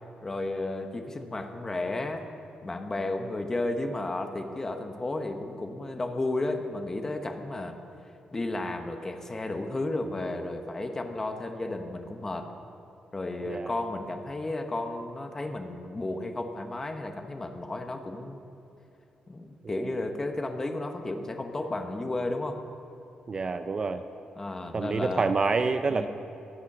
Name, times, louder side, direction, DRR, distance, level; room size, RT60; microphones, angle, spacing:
voice 1, 0.2-2.2 2.6-7.8 8.3-12.5 13.1-18.4 19.3-22.6 24.4-25.3 25.9-26.1, left 2 dB, 20° left, 5 dB, 1.0 m, -33 dB
voice 2, 23.3-24.0 24.7-26.1, right 4 dB, 30° right, 9 dB, 0.4 m, -27 dB
21.5 x 8.2 x 6.1 m, 2.8 s
wide cardioid pair, 155°, 3 cm